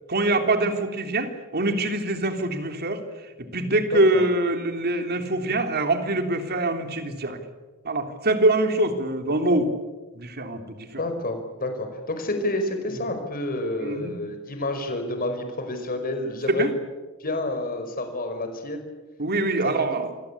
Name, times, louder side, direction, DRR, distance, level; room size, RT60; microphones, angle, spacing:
voice 1, 0.1-3.0 3.4-7.4 7.8-9.7 10.1-11.0 13.8-14.1 16.5-16.7 19.2-20.1, right 2 dB, 50° right, 6 dB, 3.3 m, -24 dB
voice 2, 3.9-4.3 11.0-16.7 17.2-18.8 19.8-20.0, left 1 dB, 45° left, 6 dB, 5.0 m, -29 dB
28.5 x 21.5 x 8.6 m, 1.2 s
head